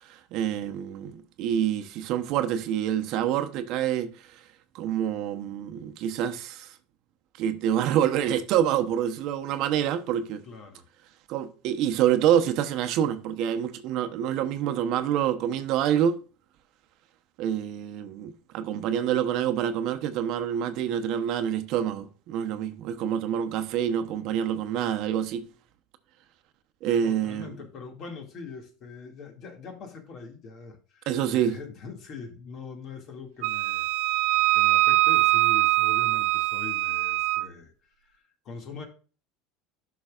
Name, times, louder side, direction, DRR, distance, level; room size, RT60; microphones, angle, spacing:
voice 1, 0.0-4.4 4.7-6.7 7.4-10.4 11.3-16.2 17.4-25.5 26.8-27.5 31.1-31.6, right 10 dB, 55° right, 0.9 m, -27 dB
voice 2, 10.4-10.9 27.0-33.9 34.3-37.7 38.0-38.9, left 5 dB, 45° left, 2.1 m, -42 dB
Wind instrument woodwind instrument, 33.4-37.5, right 20 dB, 75° right, 0.4 m, -23 dB
11.5 x 6.0 x 2.4 m
supercardioid pair, 130°, 0 cm